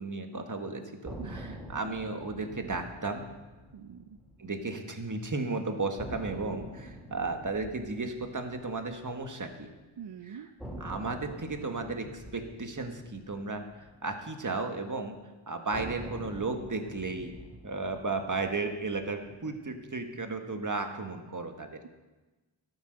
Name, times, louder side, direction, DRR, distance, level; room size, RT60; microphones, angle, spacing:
voice 1, 0.0-3.3 4.4-9.7 10.2-10.5 10.8-15.2 15.5-17.3 17.6-21.8, right 3 dB, 40° right, 5 dB, 1.8 m, -34 dB
sound 1, 1.0-5.1 5.4-5.5 6.0-10.1 10.6-15.0 15.7-20.1, equal, ahead, 4.2 m, -46 dB
voice 2, 1.2-1.5 3.7-4.2 10.0-10.5, right 8 dB, 55° right, 9 dB, 0.7 m, -44 dB
12.5 x 9.0 x 6.6 m, 1.2 s
cardioid pair, 45°, 50 cm